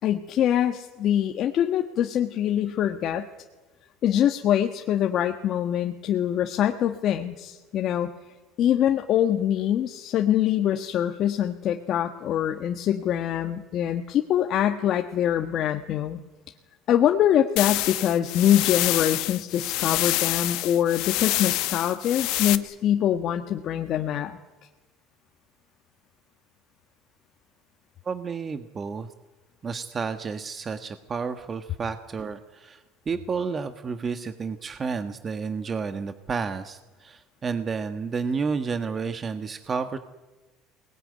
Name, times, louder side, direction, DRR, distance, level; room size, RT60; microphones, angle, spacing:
voice 1, 0.0-3.2 4.0-8.1 8.6-16.2 16.9-24.4, left 10 dB, 55° left, 4 dB, 1.5 m, -24 dB
sound 1, 17.6-22.6, left 19 dB, 75° left, 1.1 m, -27 dB
voice 2, 28.0-29.1 29.6-40.0, right 5 dB, 30° right, 9 dB, 1.5 m, -31 dB
22.5 x 19.5 x 9.8 m, 1.2 s
supercardioid pair, 95°, 0 cm